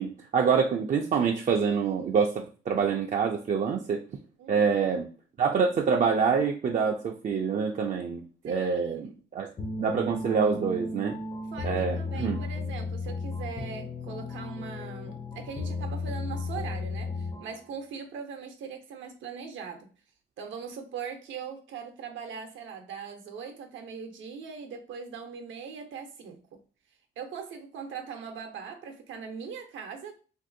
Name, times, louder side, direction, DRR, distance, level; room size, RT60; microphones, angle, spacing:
voice 1, 0.0-4.0 4.5-5.1 5.4-9.5 9.8-11.1 11.6-12.4, right 6 dB, 40° right, 0.4 m, -26 dB
voice 2, 4.4-4.7 8.4-9.1 11.5-19.9 20.4-26.4 27.2-30.2, right 6 dB, 75° right, 0.7 m, -40 dB
sound 1, 9.6-17.7, left 3 dB, 30° left, 0.5 m, -34 dB
3.0 x 2.6 x 2.6 m
cardioid pair, 90°, 20 cm